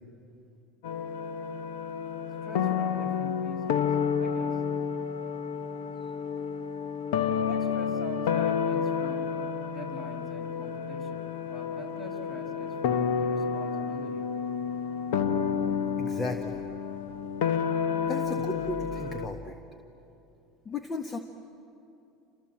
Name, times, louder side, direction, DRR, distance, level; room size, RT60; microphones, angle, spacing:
sound 1, 0.8-19.3, left 7 dB, 80° left, 1.2 m, -30 dB
voice 1, 2.4-4.6 6.0-6.1 7.5-9.3 9.7-14.3, equal, 15° left, 3 dB, 6.2 m, -45 dB
voice 2, 16.0-16.6 18.0-19.6 20.6-21.2, left 2 dB, 30° left, 5 dB, 1.6 m, -35 dB
29.0 x 27.0 x 7.6 m, 2.7 s
supercardioid pair, 100°, 0 cm